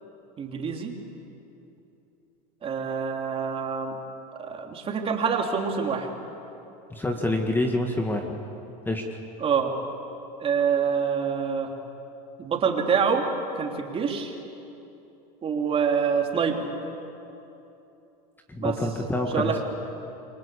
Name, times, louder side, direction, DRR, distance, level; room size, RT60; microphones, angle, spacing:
voice 1, 0.4-0.9 2.6-4.0 4.4-6.1 9.4-9.7 10.4-11.7 12.4-13.3 13.6-14.3 15.4-16.7 18.6-18.8 19.3-19.6, right 6 dB, 25° right, 2 dB, 3.4 m, -26 dB
voice 2, 6.9-8.3 8.9-9.0 18.5-19.6, left 1 dB, 10° left, 3 dB, 1.8 m, -26 dB
28.0 x 24.0 x 8.5 m, 2.9 s
supercardioid pair, 125°, 21 cm